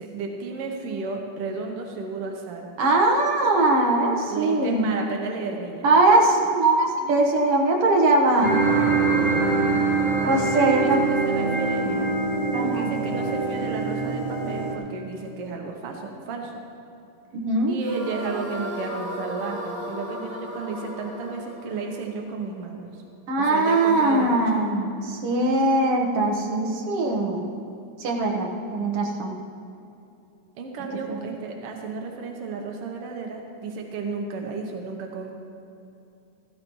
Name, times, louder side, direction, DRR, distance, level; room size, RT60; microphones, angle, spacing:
voice 1, 0.0-2.7 4.3-5.9 7.3-7.6 10.4-12.1 12.6-16.6 17.7-23.0 23.4-24.4 30.6-35.3, right 4 dB, 90° right, 1 dB, 1.2 m, -33 dB
voice 2, 2.8-4.9 5.8-8.5 10.2-11.0 12.5-12.9 17.3-17.7 23.3-27.5 28.0-29.3 31.1-31.2, right 2 dB, 60° right, 0 dB, 1.6 m, -21 dB
sound 1, 8.4-14.7, right 4 dB, 40° right, 1.2 m, -24 dB
sound 2, 17.8-23.0, equal, 70° left, 5.3 m, -36 dB
15.5 x 14.0 x 3.1 m, 2.8 s
omnidirectional pair, 4.1 m